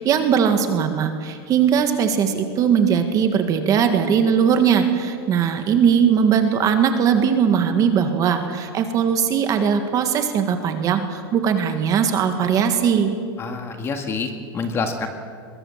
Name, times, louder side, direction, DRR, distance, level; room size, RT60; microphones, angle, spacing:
voice 1, 0.0-13.1, right 7 dB, 25° right, 7 dB, 1.7 m, -19 dB
voice 2, 13.4-15.1, left 4 dB, 20° left, 5 dB, 1.9 m, -27 dB
23.5 x 22.0 x 7.4 m, 2.1 s
supercardioid pair, 160°, 13 cm